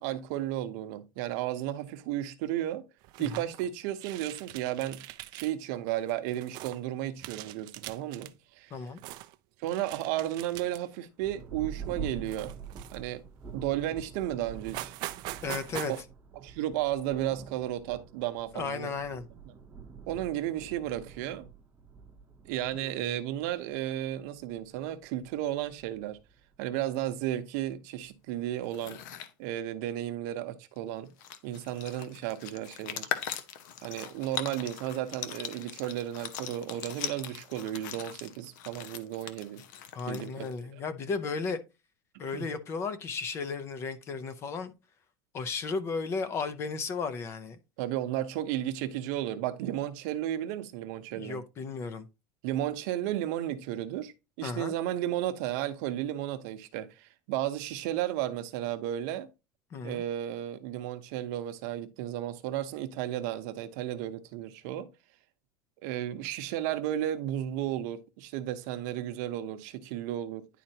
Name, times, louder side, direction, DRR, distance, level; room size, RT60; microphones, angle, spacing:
voice 1, 0.0-2.8 3.2-5.0 5.3-8.8 9.6-12.5 12.9-13.2 13.5-14.9 16.4-18.9 19.5-19.6 20.1-21.5 22.5-26.2 26.6-29.0 29.4-31.1 31.4-33.1 33.8-39.6 40.1-40.8 42.3-42.5 47.8-51.4 52.4-54.1 54.4-59.3 59.8-64.9 65.8-70.5, right 12 dB, 60° right, 0.8 m, -33 dB
sound 1, 3.0-3.7 4.0-5.5 5.9-6.8 7.2-8.3 8.7-9.3 9.7-11.0 11.4-11.6 12.2-13.2 13.8-13.9 14.2-14.3 14.6-16.0, right 17 dB, 45° right, 0.4 m, -43 dB
Thunder, 11.2-27.2 28.0-28.1 28.6-29.1, right 5 dB, 15° right, 0.8 m, -46 dB
voice 2, 15.4-15.9 18.5-19.2 39.9-41.6 42.2-44.7 45.3-47.6 51.1-52.1 54.4-54.7 59.7-60.0, left 4 dB, 25° left, 0.6 m, -34 dB
sound 2, 28.6-29.3 30.8-30.9 31.1-40.6, left 10 dB, 75° left, 0.9 m, -40 dB
10.0 x 4.2 x 2.8 m
cardioid pair, 170°, 10 cm